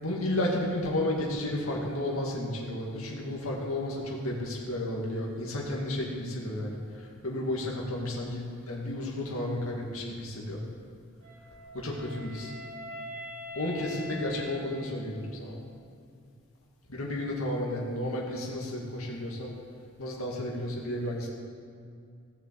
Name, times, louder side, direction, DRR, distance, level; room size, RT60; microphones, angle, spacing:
voice 1, 0.0-10.6 11.7-12.5 13.6-15.6 16.9-19.5 20.0-21.3, left 1 dB, 70° left, -2 dB, 2.2 m, -32 dB
Wind instrument woodwind instrument, 11.2-15.4, equal, 85° right, 3.4 m, -43 dB
16.0 x 7.1 x 7.6 m, 2.3 s
head